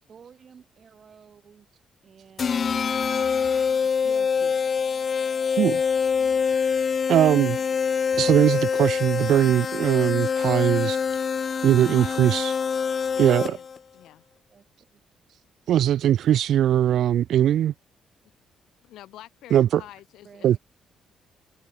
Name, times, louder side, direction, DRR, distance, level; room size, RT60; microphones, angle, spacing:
voice 1, 0.1-1.7 2.0-2.8 3.8-4.9 7.5-7.7 8.1-8.5 14.5-15.0 20.2-20.6, right 7 dB, 50° right, 5.7 m, -51 dB
sound 1, 2.4-13.8, left 6 dB, 45° left, 0.3 m, -25 dB
voice 2, 7.1-7.6 8.2-11.0 11.6-12.5 13.2-13.5 15.7-17.7 19.5-19.8 20.4-20.6, right 11 dB, 70° right, 0.5 m, -20 dB
voice 3, 11.8-12.4 13.1-13.7 13.9-14.2 18.8-20.6, left 14 dB, 85° left, 4.3 m, -46 dB
cardioid pair, 90°, 0 cm